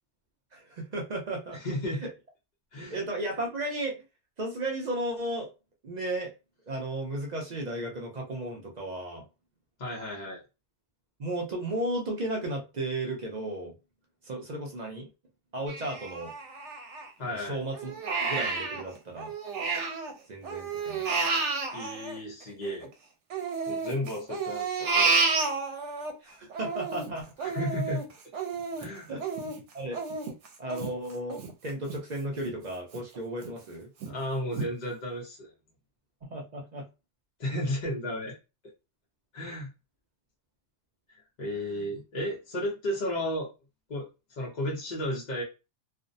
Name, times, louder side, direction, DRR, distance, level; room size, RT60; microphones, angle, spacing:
voice 1, 0.5-1.6 2.0-2.1 2.9-4.0 4.4-5.5 5.8-6.3 6.7-9.3 11.2-13.8 14.2-15.1 15.5-16.3 17.2-17.9 18.2-19.3 20.3-21.2 26.2-27.3 29.1-29.2 29.7-30.0 30.6-33.9 36.2-36.9 41.5-41.9, right 1 dB, 50° right, 0.5 m, -34 dB
voice 2, 1.6-2.0 2.7-3.0 9.8-10.4 17.2-17.6 21.7-22.9 23.7-25.2 27.4-28.0 28.8-29.1 34.1-35.5 37.4-38.3 39.3-39.7 41.4-43.5 43.9-44.1 44.4-45.4, left 1 dB, 45° left, 0.8 m, -33 dB
Crying sobbing, 15.7-17.3 17.7-20.1 20.4-22.9 23.3-26.1 26.5-32.0 32.4-32.5 32.9-33.5 34.0-34.1 34.6-34.7, right 4 dB, 85° right, 0.9 m, -31 dB
2.5 x 2.0 x 2.6 m
omnidirectional pair, 1.2 m